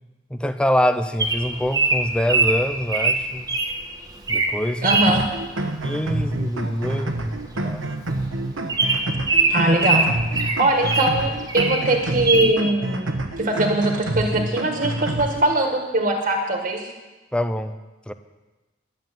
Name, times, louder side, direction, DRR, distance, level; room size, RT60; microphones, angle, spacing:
voice 1, 0.3-3.5 4.3-4.8 5.8-7.9 17.3-17.8 18.1-18.2, equal, 5° left, 10 dB, 0.5 m, -25 dB
Bird vocalization bird call bird song, 1.2-3.7 4.2-4.5 4.8-5.1 6.6-6.8 7.1-7.2 7.5-7.6 8.1-8.2 8.7-11.1 11.5-11.9 12.3-12.5, right 3 dB, 20° right, 1.3 m, -21 dB
voice 2, 4.8-5.3 9.5-10.1 10.3-16.9, right 1 dB, 40° right, 2 dB, 1.8 m, -21 dB
sound 1, 4.8-15.5, right 2 dB, 90° right, 1.2 m, -28 dB
11.5 x 7.5 x 9.2 m, 1.2 s
head